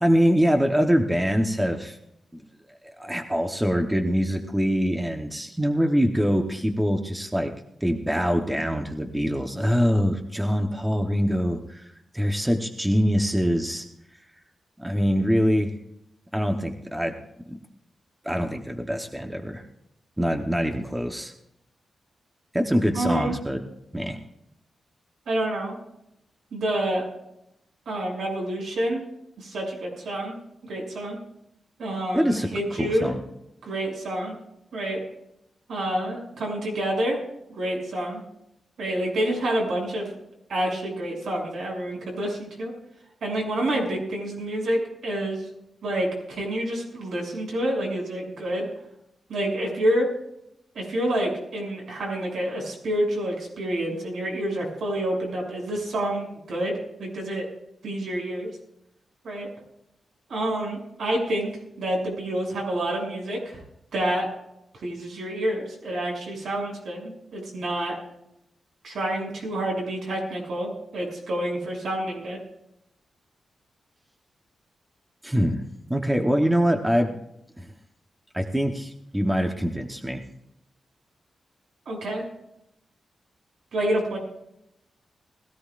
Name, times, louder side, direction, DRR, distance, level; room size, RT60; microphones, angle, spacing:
voice 1, 0.0-2.0 2.3-2.4 2.8-7.5 7.8-11.9 12.1-13.9 14.8-15.7 16.3-17.1 17.5-17.6 18.2-19.6 20.2-21.3 22.5-23.6 23.9-24.2 32.1-32.5 32.8-33.2 75.2-75.6 75.9-77.1 77.6-77.7 78.3-80.2, equal, 5° right, 4 dB, 0.9 m, -24 dB
voice 2, 22.9-23.4 25.3-25.8 26.5-27.0 27.8-29.0 29.4-30.3 30.7-31.2 31.8-33.1 33.6-34.3 34.7-35.0 35.7-37.2 37.5-38.2 38.8-40.2 40.5-42.7 43.2-45.5 45.8-48.7 49.3-50.1 50.7-56.7 57.0-57.4 57.8-58.5 59.2-59.5 60.3-61.5 61.8-63.6 63.9-64.3 64.8-68.0 68.8-72.4 81.8-82.3 83.7-84.2, right 1 dB, 75° right, 0 dB, 6.7 m, -28 dB
21.0 x 15.5 x 2.5 m, 0.81 s
wide cardioid pair, 170°, 0 cm